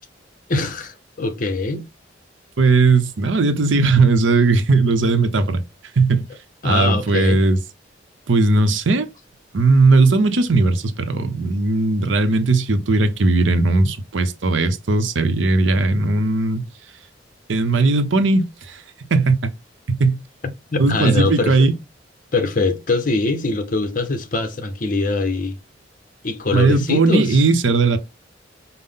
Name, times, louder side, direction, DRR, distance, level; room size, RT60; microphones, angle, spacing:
voice 1, 0.5-1.8 6.6-7.4 20.7-21.7 22.3-25.6 26.2-27.4, left 3 dB, 45° left, 0.7 m, -22 dB
voice 2, 2.6-5.6 6.0-6.3 6.6-7.6 8.3-9.1 9.5-16.7 17.5-18.8 19.1-19.4 19.9-20.2 20.8-21.7 26.5-28.0, right 3 dB, 90° right, 0.7 m, -17 dB
5.4 x 2.1 x 3.7 m
head